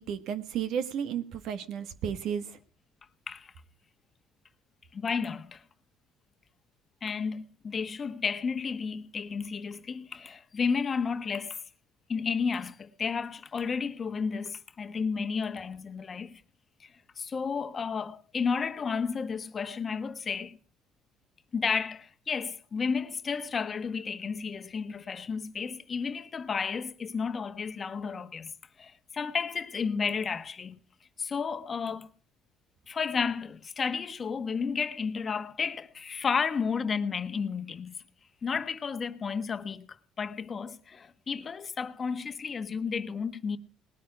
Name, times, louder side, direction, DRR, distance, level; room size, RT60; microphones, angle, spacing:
voice 1, 0.0-2.4, right 8 dB, 65° right, 1.5 m, -33 dB
voice 2, 4.9-5.6 7.0-11.6 12.1-16.3 17.2-20.6 21.5-28.5 28.8-30.8 31.2-32.1 32.9-38.0 38.4-39.9 40.2-43.6, left 5 dB, 35° left, 1.2 m, -32 dB
19.5 x 9.3 x 4.9 m
cardioid pair, 95°, 0 cm